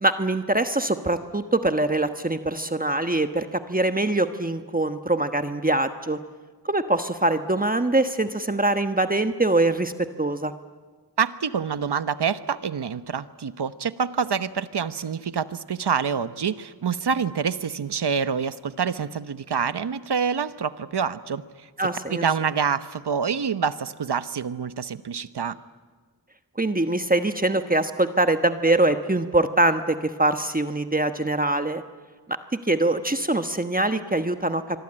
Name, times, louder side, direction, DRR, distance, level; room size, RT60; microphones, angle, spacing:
voice 1, 0.0-6.2 6.6-10.5 21.8-22.2 26.6-31.8 32.6-34.6, right 2 dB, 20° right, 8 dB, 1.2 m, -23 dB
voice 2, 11.2-21.4 22.1-25.6, right 6 dB, 70° right, 13 dB, 1.1 m, -26 dB
26.0 x 23.0 x 8.9 m, 1.5 s
wide cardioid pair, 55°, 42 cm